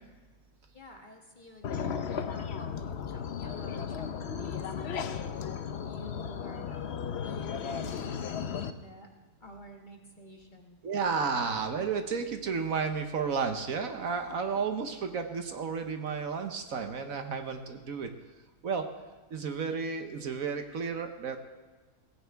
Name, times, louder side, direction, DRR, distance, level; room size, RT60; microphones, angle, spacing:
voice 1, 0.7-5.5 5.8-6.8 7.1-9.1 9.4-10.8 14.3-14.4, equal, 30° left, 2 dB, 1.4 m, -50 dB
sound 1, 1.6-8.7, left 7 dB, 55° left, 0.8 m, -35 dB
voice 2, 10.8-18.1 18.6-18.9 19.3-21.4, right 5 dB, 60° right, 6 dB, 1.3 m, -32 dB
18.0 x 16.5 x 3.5 m, 1.3 s
omnidirectional pair, 1.7 m